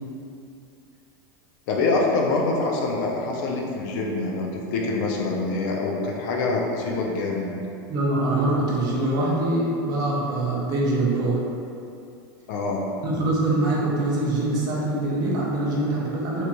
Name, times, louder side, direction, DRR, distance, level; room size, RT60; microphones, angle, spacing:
voice 1, 1.7-7.6 12.5-12.9, left 3 dB, 55° left, -1 dB, 0.5 m, -25 dB
voice 2, 7.9-11.4 13.0-16.4, right 2 dB, 30° right, -5 dB, 0.5 m, -24 dB
2.9 x 2.6 x 2.2 m, 2.6 s
supercardioid pair, 150°, 12 cm